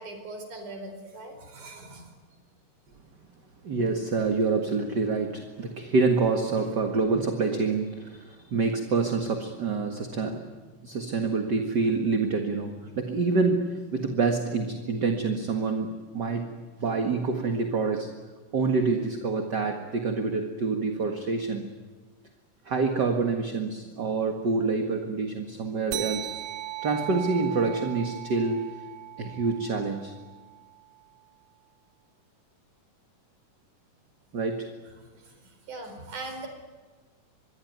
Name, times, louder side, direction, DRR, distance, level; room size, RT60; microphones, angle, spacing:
voice 1, 0.0-2.1 35.1-36.5, right 2 dB, 65° right, 6 dB, 5.7 m, -40 dB
voice 2, 3.6-10.5 10.8-18.1 18.5-21.7 22.7-26.4 26.8-28.7 29.2-30.1 34.3-34.7, right 4 dB, 40° right, 4 dB, 1.8 m, -27 dB
sound 1, 25.9-30.8, right 14 dB, 90° right, 3.1 m, -38 dB
26.0 x 22.5 x 9.5 m, 1.4 s
omnidirectional pair, 3.8 m